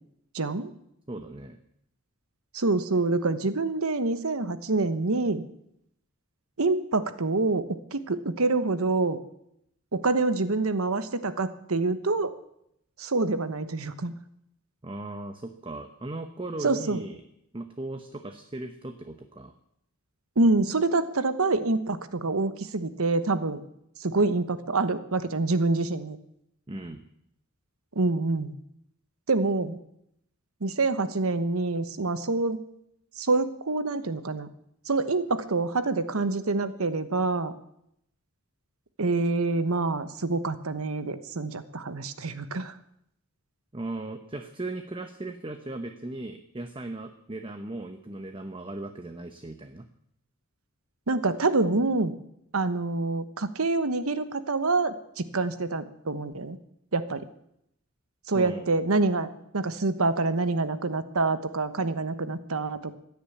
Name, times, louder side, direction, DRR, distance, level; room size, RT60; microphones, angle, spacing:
voice 1, 0.3-0.7 2.5-5.4 6.6-9.2 9.9-12.3 13.0-14.1 16.6-17.0 20.4-23.6 24.0-26.2 27.9-28.5 29.3-29.8 30.6-32.6 33.2-34.5 34.9-37.5 39.0-42.7 51.1-52.1 52.5-56.6 56.9-57.2 58.3-62.9, right 3 dB, 80° right, 12 dB, 1.1 m, -26 dB
voice 2, 1.1-1.6 14.8-17.2 17.5-19.5 26.7-27.0 43.7-49.8 58.3-58.7, right 2 dB, 25° right, 8 dB, 0.9 m, -37 dB
15.5 x 10.0 x 8.5 m, 0.77 s
head